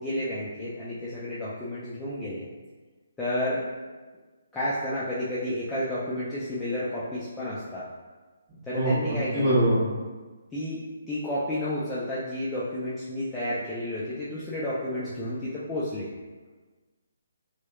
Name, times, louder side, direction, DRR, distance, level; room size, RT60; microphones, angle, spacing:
voice 1, 0.0-2.5 3.2-3.7 4.5-7.9 8.7-9.6 10.5-16.1, left 1 dB, 10° left, -10 dB, 0.3 m, -31 dB
voice 2, 8.7-9.8, right 1 dB, 25° right, -11 dB, 1.3 m, -23 dB
2.9 x 2.1 x 2.2 m, 1.3 s
hypercardioid pair, 160°, 0 cm